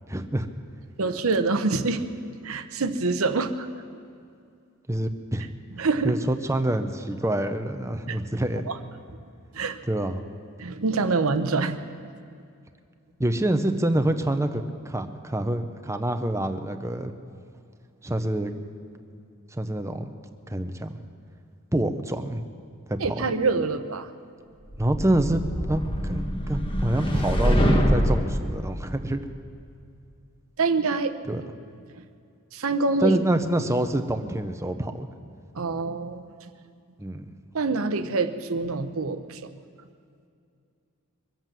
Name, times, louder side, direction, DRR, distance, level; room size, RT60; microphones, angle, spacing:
voice 1, 0.1-0.5 4.9-5.5 6.0-8.7 9.9-10.2 13.2-17.1 18.0-18.5 19.5-20.1 20.5-21.0 21.7-22.4 22.9-23.2 24.8-25.4 25.7-29.2 31.3-31.4 33.0-35.1 37.0-37.3, right 1 dB, 15° right, 7 dB, 0.7 m, -26 dB
voice 2, 1.0-2.0 2.4-3.7 5.8-6.2 8.1-8.2 9.5-9.8 10.6-11.8 23.0-24.1 30.6-31.1 32.5-33.2 35.6-36.2 37.5-39.4, right 3 dB, 65° right, 10 dB, 0.8 m, -25 dB
sound 1, 24.7-28.4, equal, 25° left, 1.4 m, -24 dB
23.5 x 7.9 x 7.5 m, 2.4 s
head